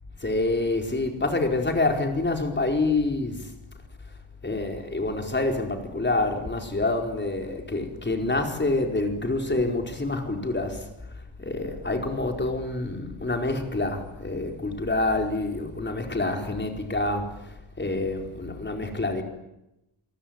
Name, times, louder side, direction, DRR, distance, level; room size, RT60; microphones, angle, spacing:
voice 1, 0.2-3.5 4.4-10.9 11.4-19.2, left 2 dB, 20° left, 4.8 m, -27 dB
28.5 x 23.0 x 9.1 m
wide cardioid pair, 175°, 49 cm